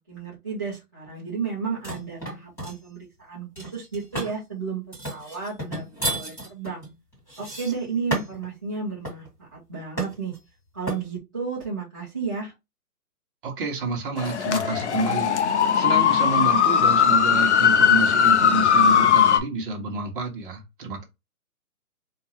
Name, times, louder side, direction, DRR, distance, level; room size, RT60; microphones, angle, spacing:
voice 1, 0.0-6.8 7.4-10.3 10.7-12.5, right 5 dB, 15° right, 0.5 m, -33 dB
sound 1, 1.8-2.8 3.5-4.4 4.9-8.5 9.0-9.3 10.0-10.4 10.9-11.1, right 1 dB, 5° left, 1.8 m, -32 dB
voice 2, 13.4-21.0, right 3 dB, 35° right, 1.2 m, -29 dB
sound 2, 14.2-19.4, left 7 dB, 50° left, 0.6 m, -19 dB
4.4 x 2.4 x 2.9 m
hypercardioid pair, 155°, 46 cm